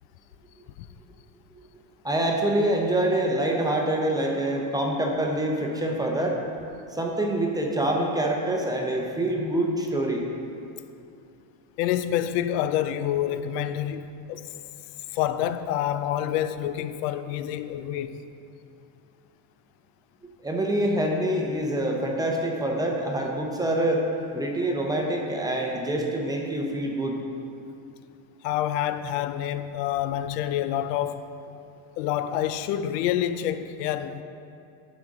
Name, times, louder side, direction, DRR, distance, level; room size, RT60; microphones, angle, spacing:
voice 1, 2.0-6.4 6.9-10.2 20.4-24.0 24.3-27.2, right 1 dB, 10° right, 0 dB, 0.6 m, -26 dB
voice 2, 11.8-14.4 15.1-18.2 28.4-31.2 32.0-34.2, left 11 dB, 80° left, 11 dB, 0.6 m, -27 dB
10.5 x 6.2 x 3.6 m, 2.6 s
supercardioid pair, 135°, 47 cm